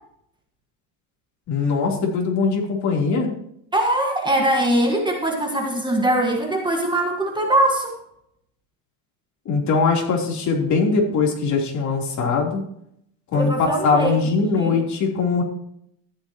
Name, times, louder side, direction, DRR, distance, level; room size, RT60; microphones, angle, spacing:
voice 1, 1.5-3.3 9.5-12.6 13.3-15.4, left 4 dB, 45° left, 0 dB, 3.4 m, -21 dB
voice 2, 3.7-8.0 13.3-14.3 14.6-14.8, right 1 dB, 10° right, 1 dB, 1.6 m, -21 dB
14.0 x 11.0 x 3.0 m, 0.72 s
cardioid pair, 145°, 41 cm